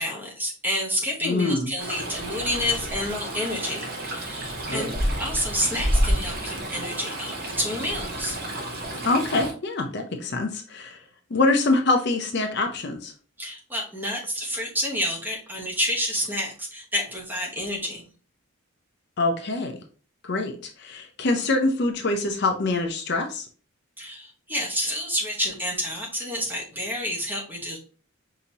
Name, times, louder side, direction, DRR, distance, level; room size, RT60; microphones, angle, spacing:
voice 1, 0.0-4.9 5.2-8.4 13.4-18.1 24.0-27.8, equal, 10° right, -1 dB, 0.9 m, -29 dB
voice 2, 1.2-1.7 4.7-4.9 9.0-11.0 11.3-13.1 19.2-19.8 20.2-23.4, left 2 dB, 50° left, 4 dB, 0.6 m, -24 dB
Stream, 1.8-9.5, equal, 45° right, 1.0 m, -29 dB
5.2 x 2.8 x 2.8 m, 0.39 s
head